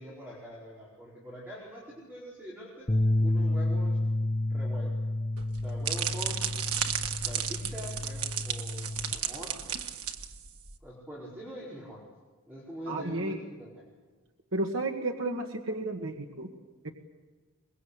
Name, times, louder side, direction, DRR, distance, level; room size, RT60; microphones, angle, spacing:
voice 1, 0.0-2.9 3.2-4.0 4.5-4.9 5.6-6.4 7.2-9.6 10.8-12.0 12.5-13.8, equal, 10° right, -7 dB, 4.8 m, -43 dB
sound 1, 2.9-9.1, left 1 dB, 20° left, 0.9 m, -30 dB
sound 2, 5.4-10.7, right 8 dB, 85° right, 1.6 m, -34 dB
voice 2, 12.9-13.4 14.5-16.5 16.8-16.9, right 2 dB, 60° right, 2 dB, 1.8 m, -32 dB
23.5 x 22.0 x 8.3 m, 1.4 s
head